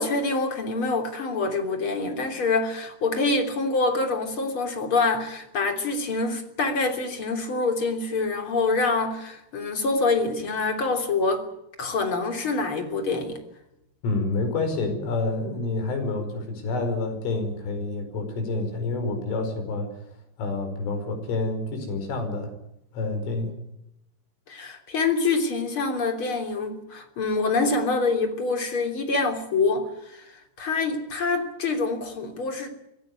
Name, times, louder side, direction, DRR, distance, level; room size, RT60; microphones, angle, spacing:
voice 1, 0.0-11.4 11.8-13.4 24.5-30.2 30.6-32.7, left 3 dB, 30° left, 3.3 m, -26 dB
voice 2, 14.0-19.9 20.4-22.5 22.9-23.6, left 3 dB, 85° left, 7.3 m, -28 dB
25.0 x 16.0 x 9.5 m
omnidirectional pair, 5.5 m